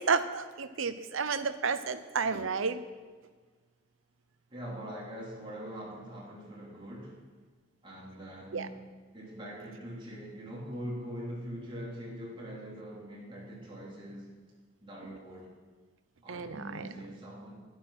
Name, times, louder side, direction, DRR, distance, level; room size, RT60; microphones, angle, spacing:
voice 1, 0.0-2.8 8.5-8.7 16.3-16.8, right 5 dB, 85° right, 12 dB, 0.7 m, -31 dB
voice 2, 4.5-7.2 7.8-8.8 9.1-14.3 14.8-15.5 16.2-17.5, equal, 25° right, -5 dB, 3.4 m, -42 dB
12.5 x 11.0 x 5.8 m, 1.4 s
head